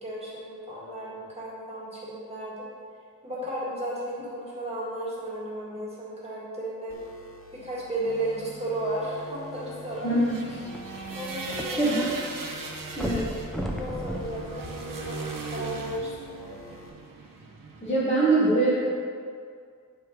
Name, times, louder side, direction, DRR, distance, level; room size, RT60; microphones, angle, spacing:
voice 1, 0.0-2.7 3.2-7.0 7.5-10.2 11.1-12.0 13.7-16.6, right 1 dB, 20° right, -7 dB, 1.8 m, -34 dB
sound 1, 6.9-16.9, equal, 40° left, 0.9 m, -47 dB
sound 2, 9.9-17.9, right 4 dB, 70° right, 1.0 m, -38 dB
sound 3, 10.7-12.1 12.4-12.5 12.9-15.5 16.2-16.3, equal, ahead, 0.6 m, -35 dB
voice 2, 11.8-12.1 13.0-13.2 17.8-18.8, right 2 dB, 20° left, -10 dB, 1.3 m, -23 dB
8.2 x 4.6 x 4.8 m, 2.2 s
wide cardioid pair, 130°, 34 cm